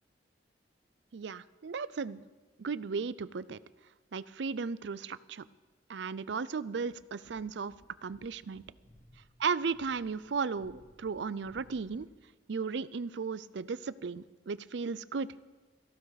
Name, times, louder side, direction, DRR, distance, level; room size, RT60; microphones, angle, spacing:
voice 1, 1.1-2.2 2.6-3.6 4.1-5.4 5.9-7.7 8.0-8.6 9.4-12.1 12.5-15.3, right 5 dB, 75° right, 17 dB, 0.5 m, -35 dB
sound 1, 6.9-12.2, left 1 dB, 45° left, 2.8 m, -61 dB
18.0 x 15.0 x 4.1 m, 1.3 s
head